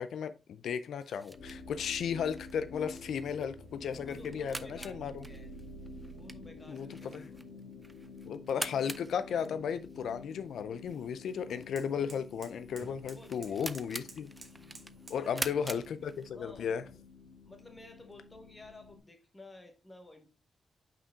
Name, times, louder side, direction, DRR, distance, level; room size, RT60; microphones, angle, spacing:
voice 1, 0.0-5.2 6.7-7.3 8.2-14.3 15.1-16.8, left 7 dB, 85° left, 0.4 m, -35 dB
sound 1, 1.0-16.6, right 1 dB, 10° right, 0.3 m, -46 dB
sound 2, 1.3-19.0, left 2 dB, 50° left, 2.6 m, -49 dB
voice 2, 4.0-5.5 6.1-7.4 13.1-13.9 15.2-15.6 16.3-17.0 17.4-20.3, left 2 dB, 15° left, 1.1 m, -53 dB
sound 3, 9.5-15.3, right 3 dB, 30° right, 1.4 m, -57 dB
5.7 x 5.0 x 3.5 m
wide cardioid pair, 170°, 0 cm